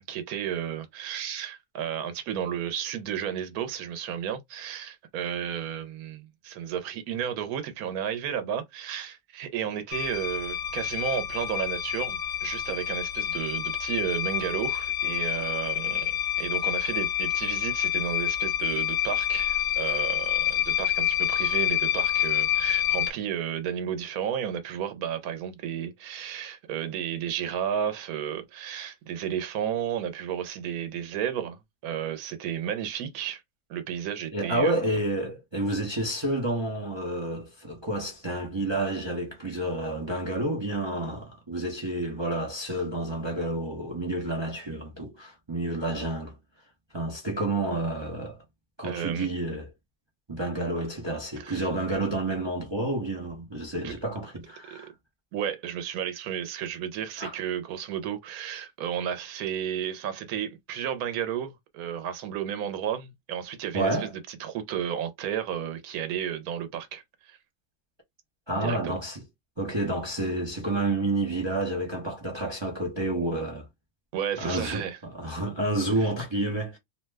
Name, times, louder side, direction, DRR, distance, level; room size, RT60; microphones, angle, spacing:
voice 1, 0.0-33.4 33.7-34.7 48.8-49.3 51.4-51.7 53.8-53.9 54.7-54.8 55.3-67.4 68.6-69.0 74.1-75.0 76.0-76.1, right 9 dB, 80° right, 1.1 m, -33 dB
sound 1, 9.9-23.1, left 11 dB, 60° left, 1.0 m, -28 dB
voice 2, 34.3-46.3 46.9-48.4 48.8-49.7 50.3-54.9 57.2-57.3 63.7-64.1 68.5-69.2 69.6-73.7 74.4-76.8, right 2 dB, 30° right, 0.5 m, -29 dB
2.7 x 2.1 x 3.3 m
omnidirectional pair, 1.5 m